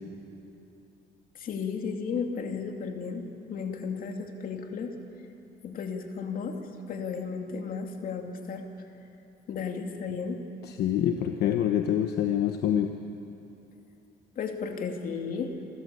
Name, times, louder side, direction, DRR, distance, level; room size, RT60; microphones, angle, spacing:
voice 1, 1.3-5.0 5.6-6.6 6.9-8.7 9.5-10.4 14.4-15.7, left 5 dB, 55° left, 4 dB, 2.5 m, -34 dB
voice 2, 10.6-12.9, left 10 dB, 75° left, 6 dB, 1.1 m, -26 dB
27.0 x 14.5 x 8.4 m, 2.8 s
cardioid pair, 110°, 17 cm